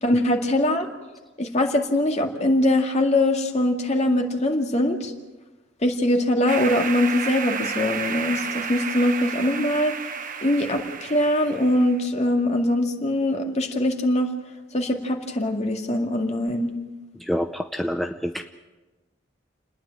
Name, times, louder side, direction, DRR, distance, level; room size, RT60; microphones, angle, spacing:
voice 1, 0.0-0.9 1.4-5.1 5.8-10.0 10.4-14.3 14.7-16.7, left 1 dB, 35° left, 3 dB, 2.1 m, -22 dB
sound 1, 6.5-12.0, right 6 dB, 45° right, 1.0 m, -31 dB
voice 2, 17.2-18.4, equal, ahead, 5 dB, 0.6 m, -27 dB
29.5 x 10.0 x 8.9 m, 1.2 s
head